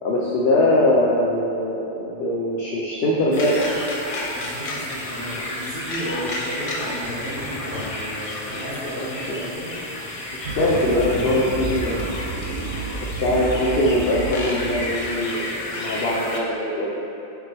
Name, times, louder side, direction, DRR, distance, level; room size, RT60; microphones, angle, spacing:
voice 1, 0.0-3.8 10.4-12.0 13.2-17.1, left 1 dB, 65° left, -3 dB, 0.8 m, -22 dB
sound 1, 3.3-16.4, left 1 dB, 40° left, 0.6 m, -31 dB
voice 2, 4.3-9.7 13.1-13.5, equal, 65° right, -13 dB, 1.7 m, -33 dB
sound 2, 7.0-8.0 10.6-11.5, equal, 40° right, 1.4 m, -37 dB
sound 3, 10.4-14.9, right 3 dB, 85° right, 0.9 m, -31 dB
6.1 x 5.7 x 3.4 m, 2.9 s
omnidirectional pair, 1.1 m